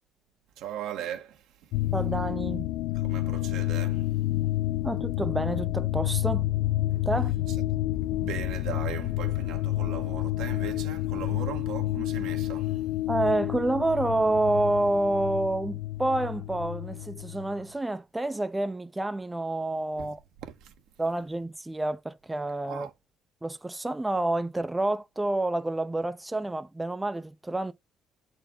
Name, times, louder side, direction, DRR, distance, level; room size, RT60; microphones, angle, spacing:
voice 1, 0.6-1.7 2.9-4.1 7.5-7.7 8.0-12.9 20.0-20.1 20.4-20.7 22.7-22.9, right 10 dB, 85° right, 1.3 m, -39 dB
sound 1, 1.7-17.6, left 16 dB, 85° left, 0.3 m, -29 dB
voice 2, 1.9-2.7 4.8-6.4 7.1-7.3 13.1-20.2 21.0-22.9 23.4-27.7, right 2 dB, 10° right, 0.4 m, -28 dB
7.6 x 4.3 x 3.7 m
cardioid pair, 110°, 0 cm